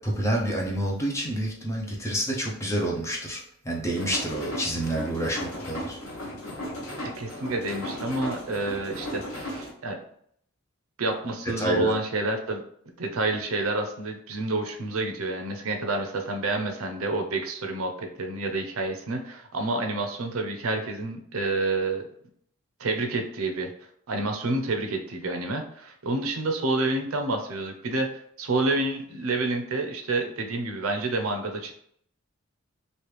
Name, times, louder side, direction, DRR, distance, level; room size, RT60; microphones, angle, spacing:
voice 1, 0.0-6.0 11.6-11.9, right 1 dB, 15° left, -1 dB, 0.6 m, -28 dB
sound 1, 3.9-9.7, equal, 70° left, 1.1 m, -36 dB
voice 2, 7.0-10.0 11.0-12.6 13.0-22.1 22.8-23.7 24.1-28.1 28.4-31.7, right 2 dB, 80° right, 4 dB, 0.6 m, -28 dB
3.2 x 2.6 x 3.2 m, 0.67 s
head